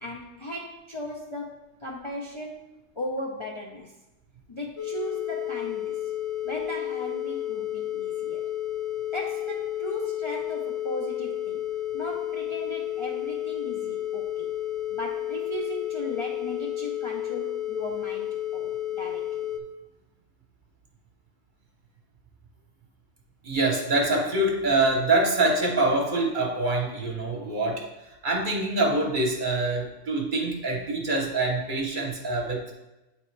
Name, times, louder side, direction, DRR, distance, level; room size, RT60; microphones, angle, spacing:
voice 1, 0.0-4.0 4.5-6.1 6.4-8.4 9.1-11.7 11.9-14.5 14.9-19.5, left 1 dB, 35° left, -3 dB, 0.5 m, -37 dB
sound 1, 4.8-19.6, left 12 dB, 65° left, 0.8 m, -31 dB
voice 2, 23.4-27.8 28.2-32.7, right 2 dB, 45° right, 0 dB, 1.0 m, -25 dB
8.7 x 3.4 x 3.2 m, 0.98 s
omnidirectional pair, 1.3 m